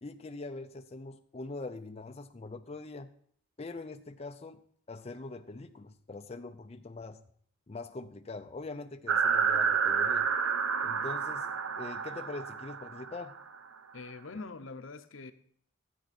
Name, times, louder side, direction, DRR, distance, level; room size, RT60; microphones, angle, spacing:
voice 1, 0.0-3.1 3.6-7.2 7.7-10.3 10.8-11.5 11.8-13.4, left 3 dB, 30° left, 0.5 m, -43 dB
sound 1, 9.1-13.4, right 6 dB, 85° right, 0.8 m, -29 dB
voice 2, 13.9-15.3, left 3 dB, 75° left, 0.8 m, -43 dB
13.5 x 9.3 x 4.2 m
head